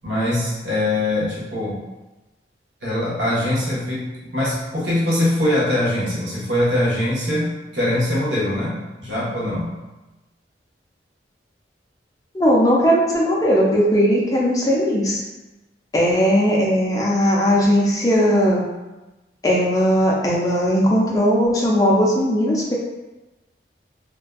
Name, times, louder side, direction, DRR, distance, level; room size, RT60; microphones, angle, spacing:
voice 1, 0.0-1.8 2.8-9.7, left 1 dB, 80° right, -8 dB, 0.9 m, -22 dB
voice 2, 12.3-15.2 15.9-18.6 19.4-22.8, equal, 20° left, -4 dB, 0.4 m, -18 dB
2.5 x 2.2 x 2.2 m, 1.1 s
head